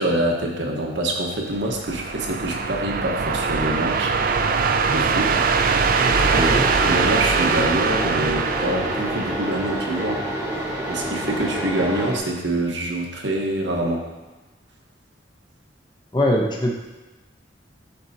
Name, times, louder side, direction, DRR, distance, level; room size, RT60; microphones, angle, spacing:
voice 1, 0.0-4.1 4.9-5.4 6.3-10.2 10.5-14.1, right 1 dB, 70° right, 0 dB, 1.2 m, -25 dB
sound 1, 1.5-10.0, right 5 dB, 45° right, 0.4 m, -22 dB
sound 2, 6.0-12.2, right 1 dB, 15° right, 1.2 m, -28 dB
voice 2, 6.3-6.7 16.1-16.7, left 1 dB, 20° left, 0 dB, 0.9 m, -21 dB
12.5 x 4.5 x 2.8 m, 1.1 s
head